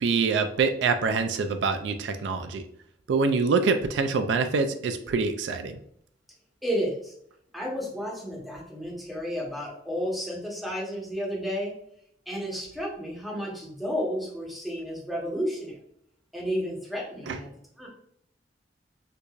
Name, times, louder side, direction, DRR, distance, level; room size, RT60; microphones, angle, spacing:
voice 1, 0.0-2.7 3.1-5.8 17.3-17.4, right 4 dB, 80° right, 8 dB, 0.3 m, -25 dB
voice 2, 6.6-7.1 7.5-11.7 12.3-15.8 16.3-17.5 17.8-17.9, equal, ahead, -4 dB, 1.1 m, -32 dB
4.6 x 2.6 x 2.4 m, 0.69 s
head